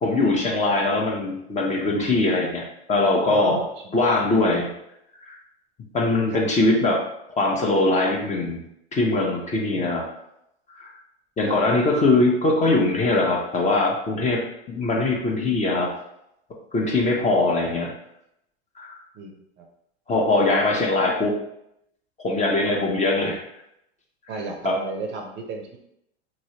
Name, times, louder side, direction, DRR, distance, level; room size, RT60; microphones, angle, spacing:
voice 1, 0.0-3.6 3.9-4.7 5.3-5.4 5.9-7.0 7.3-8.6 8.9-10.0 10.8-10.9 11.4-15.9 16.7-17.9 18.8-18.9 20.1-21.4 22.2-23.4 24.6-24.8, left 2 dB, 20° left, 0 dB, 0.6 m, -21 dB
voice 2, 3.3-3.7 6.3-6.4 9.7-10.0 11.5-11.6 17.2-17.8 19.1-19.7 23.2-23.3 24.3-25.8, right 3 dB, 35° right, 3 dB, 0.6 m, -34 dB
3.0 x 2.8 x 2.8 m, 0.79 s
hypercardioid pair, 100°, 33 cm